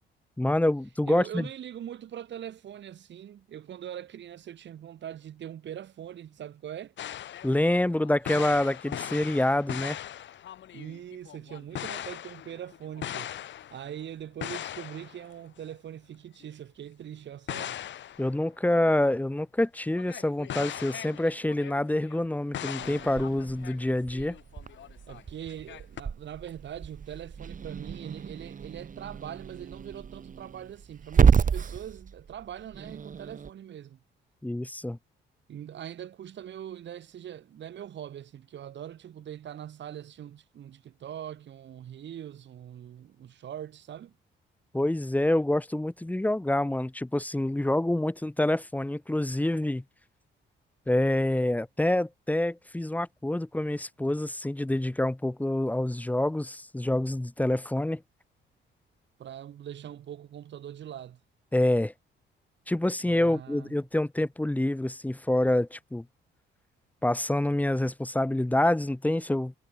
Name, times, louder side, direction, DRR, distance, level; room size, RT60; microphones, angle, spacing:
voice 1, 0.4-1.5 7.4-10.0 18.2-24.4 34.4-35.0 44.7-49.8 50.9-58.0 61.5-61.9 62.7-66.0 67.0-69.5, left 1 dB, 10° left, 1.3 m, -27 dB
voice 2, 1.1-6.9 10.7-13.3 13.7-17.8 25.1-34.0 35.5-44.1 59.2-61.2 63.0-63.8, right 10 dB, 65° right, 3.2 m, -42 dB
sound 1, 7.0-14.0 14.4-15.3 15.7-15.8 16.4-16.5 17.5-19.0 19.9-22.3 22.5-25.2 25.5-26.0, left 11 dB, 70° left, 2.2 m, -40 dB
Growling / Hiss, 22.8-33.5, right 6 dB, 40° right, 2.3 m, -30 dB
cardioid pair, 90°, 20 cm